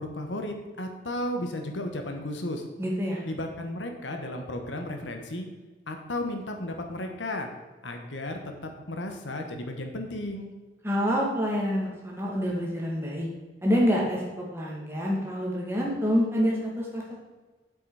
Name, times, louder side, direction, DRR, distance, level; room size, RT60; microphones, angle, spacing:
voice 1, 0.0-2.6 3.2-5.5 5.9-7.5 7.8-8.4 8.9-10.5, left 1 dB, 85° left, 4 dB, 1.4 m, -34 dB
voice 2, 2.8-3.2 10.8-13.3 13.6-17.2, equal, 15° right, -3 dB, 2.3 m, -27 dB
8.0 x 7.9 x 4.9 m, 1.3 s
head